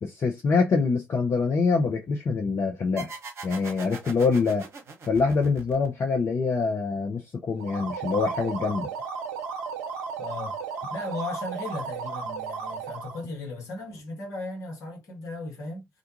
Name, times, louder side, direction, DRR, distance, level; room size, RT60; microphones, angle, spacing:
voice 1, 0.0-3.2 3.4-4.6 5.1-8.9, left 4 dB, 50° left, 0.6 m, -25 dB
sound 1, 3.0-6.3, right 4 dB, 50° right, 0.9 m, -41 dB
sound 2, 7.5-13.2, right 5 dB, 80° right, 0.5 m, -34 dB
voice 2, 10.2-10.6 10.9-15.9, left 2 dB, 65° left, 1.2 m, -36 dB
2.4 x 2.3 x 2.8 m
hypercardioid pair, 40°, 6 cm